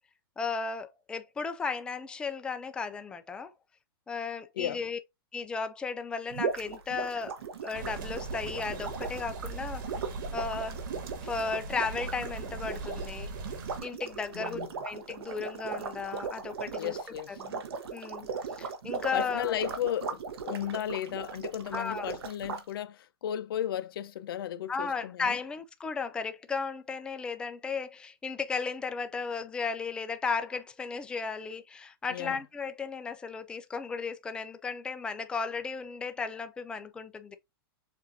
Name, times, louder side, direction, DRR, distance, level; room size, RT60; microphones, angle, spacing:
voice 1, 0.4-3.5 4.1-5.0 5.3-7.3 7.6-9.9 10.3-10.8 11.2-13.3 13.8-17.0 17.3-17.6 17.9-18.3 18.6-19.6 21.7-22.1 24.7-37.4, left 5 dB, 5° left, 0.4 m, -35 dB
sound 1, 6.3-22.6, right 5 dB, 90° right, 1.2 m, -38 dB
sound 2, 7.7-13.8, right 3 dB, 60° right, 1.5 m, -40 dB
voice 2, 14.3-14.7 16.8-17.4 19.1-25.4 32.1-32.4, left 11 dB, 70° left, 0.6 m, -35 dB
7.3 x 2.6 x 2.6 m
supercardioid pair, 160°, 13 cm